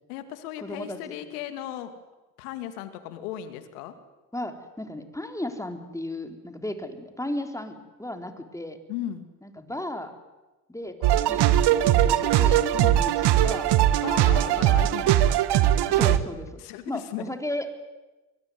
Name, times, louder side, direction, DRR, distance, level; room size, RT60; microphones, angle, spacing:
voice 1, 0.1-1.9 2.4-3.9 8.9-9.3 12.7-12.9 14.0-15.4 16.6-17.3, left 11 dB, 85° left, 9 dB, 2.5 m, -36 dB
voice 2, 0.6-1.1 4.3-8.8 9.4-10.1 10.7-13.1 13.4-13.7 14.1-14.7 15.9-17.8, left 1 dB, 5° left, 5 dB, 4.0 m, -35 dB
sound 1, 11.0-16.2, right 12 dB, 60° right, 1.5 m, -20 dB
22.5 x 22.0 x 9.5 m, 1.1 s
hypercardioid pair, 65°, 44 cm